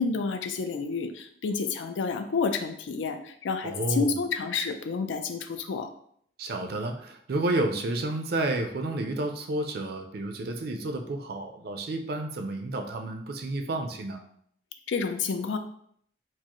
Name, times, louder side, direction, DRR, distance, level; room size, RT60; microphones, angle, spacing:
voice 1, 0.0-5.9 14.9-15.6, left 5 dB, 90° left, 7 dB, 0.4 m, -29 dB
voice 2, 3.6-4.2 6.4-14.2, right 2 dB, 55° right, 5 dB, 0.4 m, -30 dB
4.5 x 2.0 x 2.9 m, 0.65 s
head